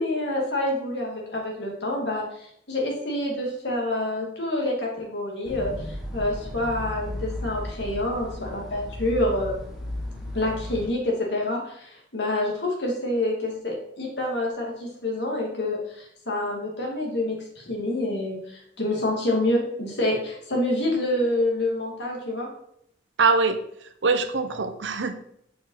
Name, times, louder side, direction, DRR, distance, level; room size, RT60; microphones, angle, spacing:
voice 1, 0.0-9.5 10.3-22.5, left 1 dB, 65° left, -1 dB, 2.4 m, -27 dB
sound 1, 5.4-10.9, left 1 dB, ahead, 1.4 m, -35 dB
voice 2, 23.2-23.6 24.0-25.2, right 4 dB, 75° right, 9 dB, 0.8 m, -23 dB
6.1 x 5.2 x 5.6 m, 0.71 s
head